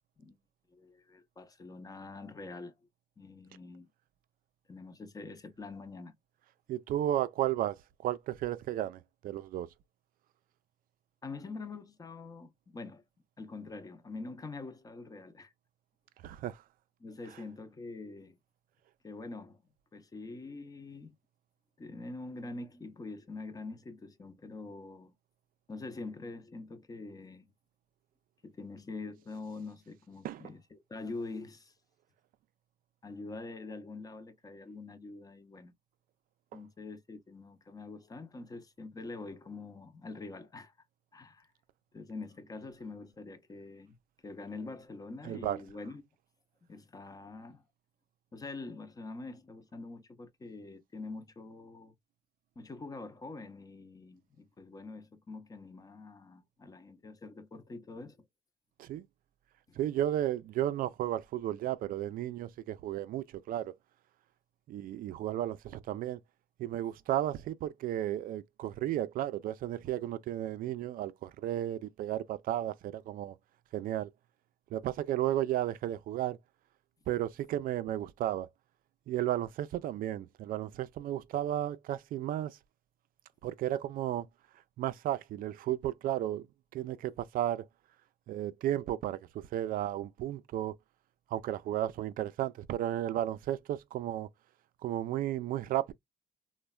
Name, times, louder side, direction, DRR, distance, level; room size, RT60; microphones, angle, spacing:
voice 1, 0.7-2.7 3.2-3.9 4.7-6.1 11.2-13.0 13.4-15.5 17.0-18.4 19.0-21.1 21.8-25.1 25.7-27.5 28.4-31.7 33.0-35.7 36.5-40.7 41.1-41.5 41.9-44.0 44.2-46.0 46.7-47.6 48.3-51.9 52.6-58.2 59.7-59.8, left 3 dB, 20° left, 0.6 m, -45 dB
voice 2, 6.7-7.8 8.0-9.7 16.2-16.6 30.2-30.4 45.2-45.6 58.8-59.1 59.8-63.7 64.7-66.2 66.6-73.4 73.7-74.1 74.7-76.4 77.1-78.5 79.1-82.6 83.4-84.3 84.8-86.5 86.7-87.6 88.3-90.8 91.3-94.3 94.8-95.9, right 12 dB, 60° right, 0.4 m, -33 dB
3.2 x 2.2 x 2.2 m
cardioid pair, 110°, 17 cm